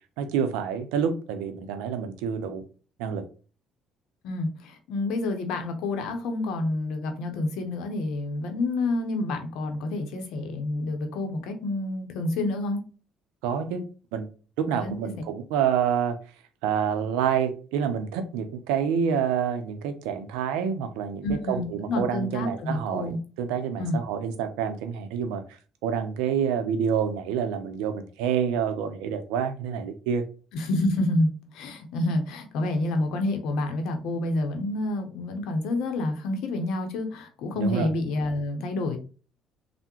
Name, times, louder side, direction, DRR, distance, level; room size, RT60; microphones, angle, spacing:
voice 1, 0.2-2.6 3.0-3.2 13.4-13.8 14.1-14.3 14.6-16.2 16.6-25.4 25.8-30.2 37.6-37.9, right 7 dB, 80° right, 8 dB, 0.5 m, -27 dB
voice 2, 4.2-12.8 14.8-14.9 21.2-23.2 23.8-24.0 30.5-39.0, left 2 dB, 75° left, 6 dB, 0.6 m, -28 dB
3.4 x 2.1 x 2.9 m, 0.37 s
hypercardioid pair, 60°, 0 cm